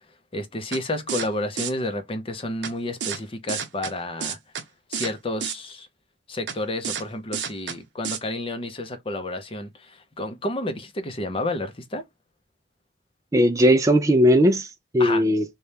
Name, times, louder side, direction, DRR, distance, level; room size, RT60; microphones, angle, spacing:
voice 1, 0.3-4.4 4.9-5.9 6.3-12.0 15.0-15.2, left 1 dB, 30° left, 0.6 m, -30 dB
sound 1, 0.7-0.8 1.1-1.3 1.6-1.7 2.6-2.7 3.0-3.2 3.5-3.9 4.2-4.6 4.9-5.1 5.4-5.6 6.5-6.6 6.8-7.0 7.3-7.8 8.0-8.2, right 8 dB, 70° right, 0.7 m, -30 dB
voice 2, 13.3-15.4, equal, 15° right, 0.4 m, -18 dB
4.0 x 2.3 x 3.3 m
head